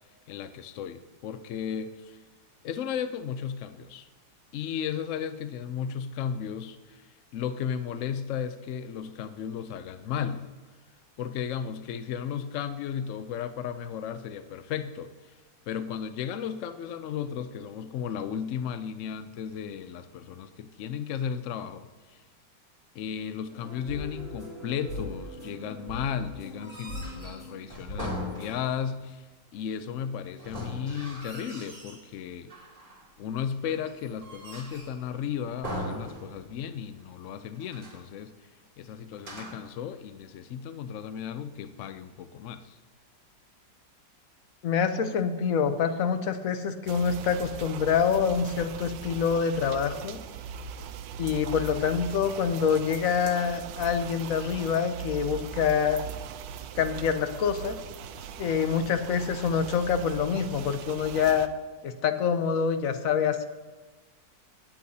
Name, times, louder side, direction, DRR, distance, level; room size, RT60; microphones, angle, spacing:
voice 1, 0.3-2.2 2.6-4.1 4.5-10.5 11.2-15.1 15.7-22.2 22.9-29.3 29.5-32.5 33.2-38.3 38.8-42.8, left 8 dB, 80° left, 11 dB, 0.6 m, -35 dB
sound 1, 23.5-28.5, equal, 20° left, 3.5 m, -40 dB
sound 2, 26.5-28.9 30.4-32.1 32.5-33.1 33.6-35.0 35.6-36.7 37.0-37.1 37.5-38.1 39.1-39.8, left 1 dB, 30° right, 2.3 m, -40 dB
voice 2, 44.6-50.2 51.2-56.0 56.8-57.8 58.4-61.5 61.8-63.5, left 6 dB, 60° left, 9 dB, 1.0 m, -26 dB
sound 3, 46.9-61.5, right 8 dB, 90° right, 1.3 m, -40 dB
18.0 x 8.5 x 2.7 m, 1.3 s
omnidirectional pair, 1.9 m